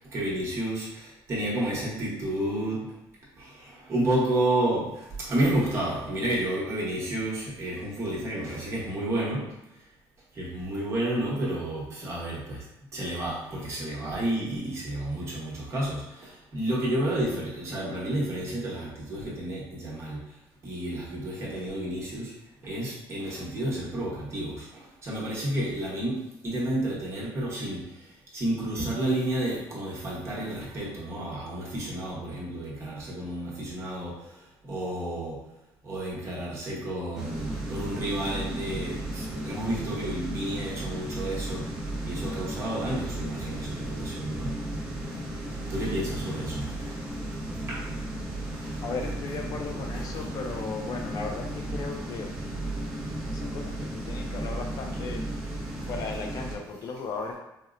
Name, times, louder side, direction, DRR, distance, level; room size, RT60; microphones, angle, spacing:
voice 1, 0.1-2.9 3.4-9.5 10.3-12.6 12.9-20.2 20.6-22.3 22.6-27.9 28.3-34.3 34.7-35.4 35.8-41.6 42.0-44.6 45.6-47.0 47.7-47.8 48.5-48.7 49.9-50.0, right 1 dB, 35° right, -5 dB, 0.9 m, -31 dB
sound 1, 37.2-56.6, right 1 dB, 10° right, 0.6 m, -34 dB
voice 2, 48.8-52.3 53.3-55.2 55.9-57.4, left 4 dB, 50° left, 2 dB, 0.4 m, -36 dB
4.2 x 2.0 x 2.4 m, 0.92 s
cardioid pair, 160°, 8 cm